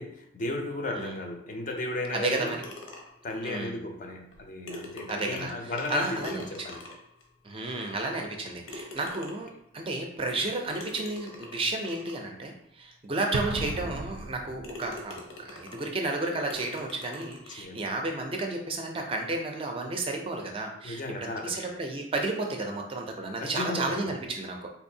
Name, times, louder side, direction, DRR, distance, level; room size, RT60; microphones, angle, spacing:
voice 1, 0.0-2.6 3.2-6.8 17.5-18.0 20.8-21.8 23.4-24.2, left 2 dB, 40° left, 3 dB, 0.4 m, -35 dB
voice 2, 2.1-2.6 3.4-3.8 5.1-6.8 7.4-9.5 9.7-24.7, right 2 dB, 25° right, 2 dB, 0.4 m, -32 dB
sound 1, 2.3-3.3 4.3-4.4 4.7-7.2 7.8-7.9 8.7-9.6 10.7-12.2 12.9-13.0 13.5-13.6 14.2-14.3 14.6-15.9 16.5-17.6, left 2 dB, 90° left, 0.8 m, -43 dB
Explosion, 13.3-15.0, right 2 dB, 90° right, 0.5 m, -35 dB
3.7 x 2.6 x 2.7 m, 0.74 s
head